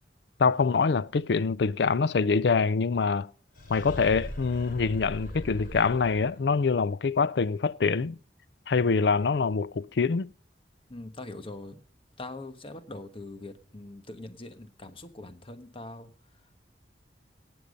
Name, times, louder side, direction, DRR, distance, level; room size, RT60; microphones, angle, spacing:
voice 1, 0.4-3.3 3.7-8.2 8.7-10.3, left 5 dB, 70° left, 0.5 m, -25 dB
sound 1, 3.6-6.6, equal, 55° left, 3.9 m, -40 dB
voice 2, 10.9-11.8 12.2-16.1, left 2 dB, 30° left, 1.2 m, -42 dB
18.5 x 7.1 x 5.2 m
head